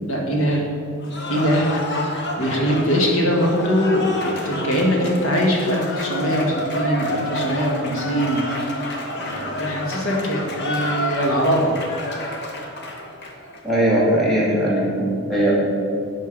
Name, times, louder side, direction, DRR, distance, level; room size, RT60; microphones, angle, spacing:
voice 1, 0.1-0.6 1.3-1.7 2.4-8.9 9.2-11.8, equal, 75° left, -1 dB, 2.0 m, -22 dB
Cheering / Applause, 1.0-13.6, left 1 dB, 50° left, 1.2 m, -29 dB
voice 2, 13.6-15.5, right 1 dB, ahead, -7 dB, 2.2 m, -19 dB
10.5 x 5.3 x 7.4 m, 2.5 s
head